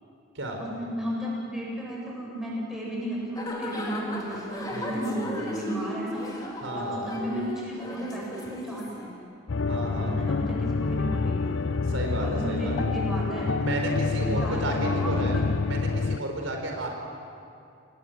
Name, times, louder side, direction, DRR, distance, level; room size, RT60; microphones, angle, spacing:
voice 1, 0.6-6.3 6.8-9.1 9.9-11.5 12.2-13.5 14.2-15.4, equal, ahead, -4 dB, 7.9 m, -34 dB
sound 1, 3.3-9.1, left 1 dB, 20° left, 3.8 m, -35 dB
voice 2, 6.6-7.1 9.7-10.3 11.9-12.7 13.6-15.3 15.6-16.9, right 1 dB, 80° right, 2 dB, 4.6 m, -32 dB
sound 2, 9.5-16.2, left 4 dB, 70° left, 0.6 m, -27 dB
27.5 x 20.0 x 9.3 m, 2.4 s
head